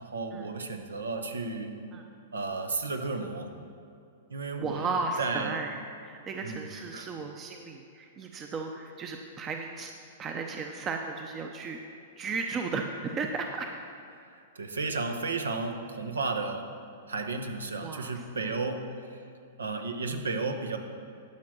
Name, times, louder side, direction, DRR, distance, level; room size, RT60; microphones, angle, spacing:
voice 1, 0.0-1.9 2.3-3.5 4.3-4.9 5.2-5.6 6.4-6.7 6.9-7.1 14.1-16.7 17.1-19.2 19.6-20.8, right 3 dB, 90° right, 6 dB, 0.9 m, -33 dB
voice 2, 4.6-9.9 10.2-11.8 12.2-13.7 17.8-18.5, right 4 dB, 25° right, 3 dB, 0.7 m, -35 dB
11.5 x 5.2 x 6.0 m, 2.5 s
hypercardioid pair, 115°, 0 cm